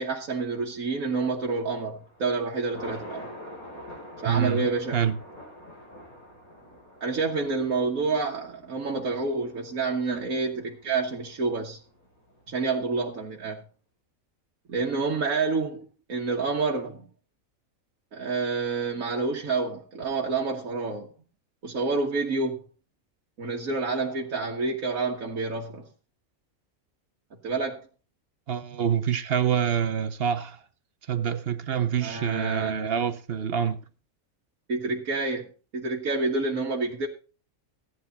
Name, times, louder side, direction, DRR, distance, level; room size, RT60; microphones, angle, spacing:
voice 1, 0.0-3.3 4.2-5.0 7.0-11.8 12.5-13.6 14.7-17.1 18.1-21.1 21.6-22.6 23.4-25.9 27.4-27.8 32.0-32.8 34.7-35.5 35.7-37.1, right 4 dB, 70° right, 1.8 m, -28 dB
Thunder, 1.9-13.2, equal, 80° left, 5.4 m, -47 dB
voice 2, 4.2-5.2 28.5-30.6 31.1-33.8, right 8 dB, 50° right, 0.8 m, -26 dB
14.5 x 9.5 x 4.1 m
omnidirectional pair, 1.5 m